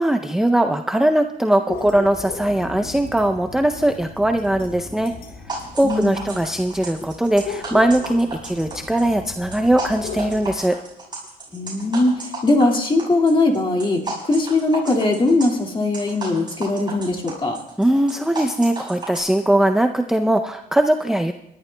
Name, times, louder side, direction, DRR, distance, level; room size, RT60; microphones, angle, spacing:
voice 1, 0.0-5.1 5.5-10.8 17.8-21.3, right 1 dB, 5° right, 5 dB, 0.5 m, -20 dB
sound 1, 1.7-10.6, left 4 dB, 70° left, 3.8 m, -36 dB
sound 2, 5.5-19.2, right 3 dB, 25° right, 6.0 m, -33 dB
voice 2, 5.8-6.3 11.5-17.6, left 2 dB, 30° left, 2 dB, 2.1 m, -20 dB
30.0 x 12.0 x 2.2 m, 0.86 s
cardioid pair, 115°, 17 cm